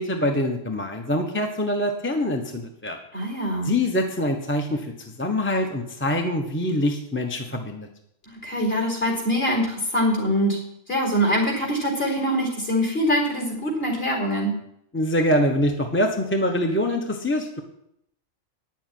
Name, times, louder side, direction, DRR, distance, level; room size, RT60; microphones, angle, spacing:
voice 1, 0.0-3.0 3.6-7.9 14.9-17.6, left 1 dB, 10° left, 3 dB, 1.0 m, -24 dB
voice 2, 3.1-3.7 8.3-10.6 10.9-14.5, equal, 45° left, -1 dB, 4.4 m, -24 dB
9.6 x 7.5 x 9.3 m, 0.76 s
omnidirectional pair, 1.4 m